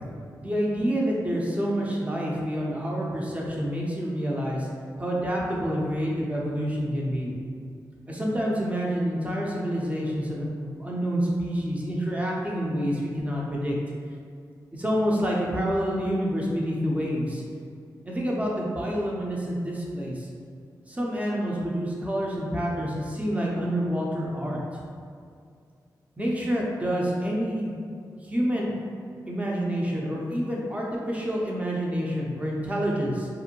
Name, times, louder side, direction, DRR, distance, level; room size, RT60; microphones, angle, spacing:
voice 1, 0.4-4.7 5.0-7.3 8.1-13.8 14.7-17.4 18.0-20.3 20.9-24.6 26.2-27.7 28.2-28.7 29.3-33.3, equal, 20° right, -3 dB, 0.6 m, -28 dB
2.5 x 2.1 x 2.9 m, 2.2 s
cardioid pair, 50°, 8 cm